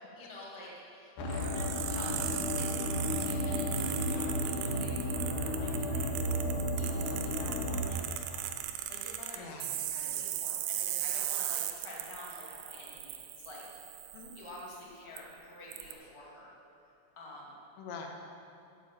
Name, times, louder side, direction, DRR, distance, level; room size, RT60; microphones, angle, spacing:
voice 1, 0.1-6.2 6.7-8.5 8.9-13.2 13.4-13.6 14.3-16.5 17.1-17.6, left 1 dB, 30° left, -5 dB, 0.5 m, -49 dB
sound 1, 1.2-7.8, left 1 dB, 65° left, 3.3 m, -33 dB
sound 2, 1.3-14.7 15.2-15.3 15.7-15.9, right 12 dB, 85° right, 3.3 m, -38 dB
voice 2, 6.9-7.3 9.4-9.8 14.1-14.4 17.8-18.1, left 5 dB, 90° left, 1 dB, 4.1 m, -46 dB
15.5 x 7.3 x 7.5 m, 2.6 s
omnidirectional pair, 5.6 m